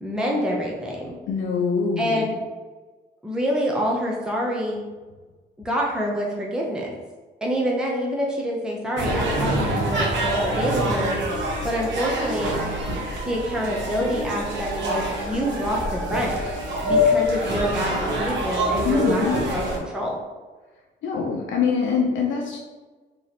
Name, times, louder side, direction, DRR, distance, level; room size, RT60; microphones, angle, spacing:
voice 1, 0.0-1.2 2.0-2.4 3.2-4.8 5.6-6.9 7.4-11.2 11.6-12.6 13.2-16.4 16.8-20.2, equal, 5° right, -3 dB, 0.7 m, -26 dB
voice 2, 1.3-2.3 18.8-19.6 21.0-22.6, left 5 dB, 70° left, -1 dB, 0.6 m, -24 dB
sound 1, 9.0-19.8, equal, 65° right, 1.1 m, -25 dB
3.1 x 3.0 x 4.0 m, 1.3 s
cardioid pair, 90°, 20 cm